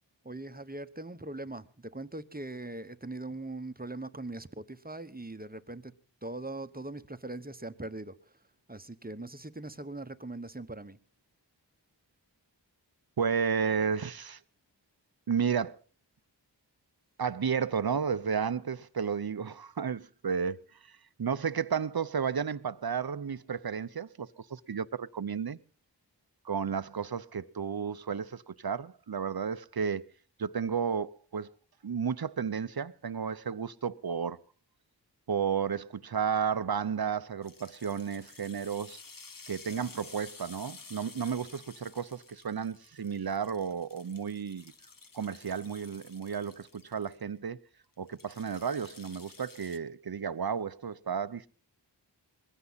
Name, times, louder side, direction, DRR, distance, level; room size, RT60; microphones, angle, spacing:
voice 1, 0.2-5.9 6.2-8.4 8.7-11.0, right 2 dB, 20° right, 1.0 m, -41 dB
voice 2, 13.2-14.4 15.3-15.8 17.2-25.6 26.4-30.0 30.4-31.5 31.8-34.4 35.3-39.0 39.5-44.7 45.1-47.6 48.0-51.5, right 6 dB, 55° right, 0.8 m, -32 dB
sound 1, 37.4-47.2 48.1-49.8, left 4 dB, 50° left, 1.1 m, -52 dB
21.0 x 15.5 x 4.1 m
wide cardioid pair, 45°, 43 cm